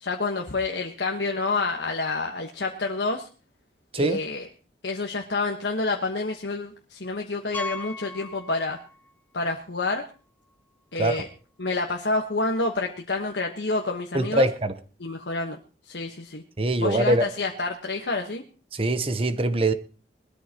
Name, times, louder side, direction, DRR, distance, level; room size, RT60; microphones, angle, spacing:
voice 1, 0.0-3.3 4.0-4.5 4.8-8.8 9.3-10.0 10.9-11.3 11.6-14.5 15.0-15.6 15.9-16.4 16.8-18.4, left 3 dB, 90° left, 1.3 m, -28 dB
Piano, 7.5-9.1 9.4-9.6 10.2-10.3 10.5-10.6 12.7-12.8, left 1 dB, 10° left, 0.7 m, -37 dB
voice 2, 14.1-14.7 16.6-17.3 18.7-19.7, right 1 dB, 35° right, 0.9 m, -23 dB
20.5 x 13.0 x 2.9 m
head